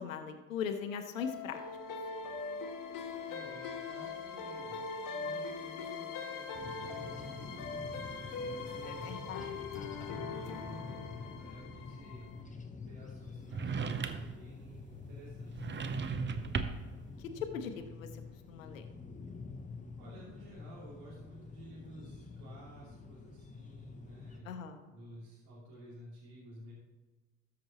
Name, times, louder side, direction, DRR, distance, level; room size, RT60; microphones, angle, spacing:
voice 1, 0.0-1.6 8.9-9.6 17.5-18.1 18.5-18.8 24.4-24.8, left 6 dB, 90° left, 7 dB, 0.8 m, -40 dB
sound 1, 1.2-12.4, left 4 dB, 55° left, 1.4 m, -41 dB
voice 2, 3.3-9.7 10.4-12.3 12.8-16.6 20.0-26.7, right 1 dB, 70° right, -7 dB, 3.0 m, -53 dB
sound 2, 6.5-24.4, left 4 dB, 20° left, 1.1 m, -48 dB
sound 3, 13.5-14.4 15.5-17.0, right 5 dB, 30° right, 0.8 m, -36 dB
13.0 x 6.1 x 3.0 m, 1.2 s
hypercardioid pair, 65°, 39 cm